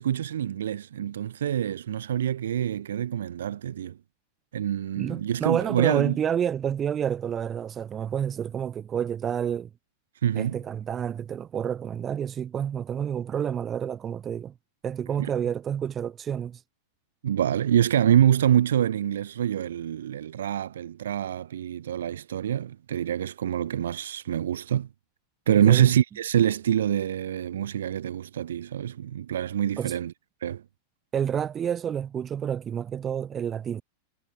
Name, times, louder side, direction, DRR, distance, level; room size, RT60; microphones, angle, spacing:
voice 1, 0.0-4.0 4.5-6.1 10.2-10.6 17.2-24.9 25.5-30.1 30.4-30.6, right 10 dB, 65° right, 1.3 m, -25 dB
voice 2, 5.0-9.7 10.3-14.6 14.8-16.6 25.5-25.9 29.8-30.0 31.1-33.8, right 8 dB, 25° right, 2.4 m, -29 dB
figure-of-eight pair, 90°, 0 cm